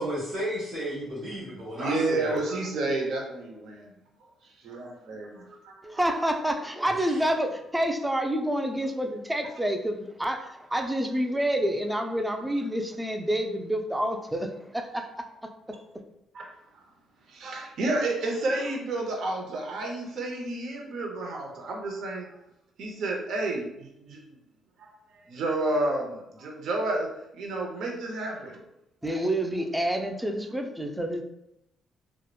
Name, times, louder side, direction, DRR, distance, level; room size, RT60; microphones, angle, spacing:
voice 1, 0.0-2.4 7.0-7.2, right 1 dB, 50° right, -8 dB, 0.8 m, -33 dB
voice 2, 1.7-3.9 4.4-5.3 16.3-16.9 17.3-22.3 22.8-24.4 24.8-27.1 27.3-28.6, right 2 dB, 75° right, 0 dB, 0.6 m, -31 dB
voice 3, 5.8-15.5 29.0-31.2, right 1 dB, 10° right, 5 dB, 0.3 m, -28 dB
2.8 x 2.0 x 2.2 m, 0.85 s
cardioid pair, 90°, 0 cm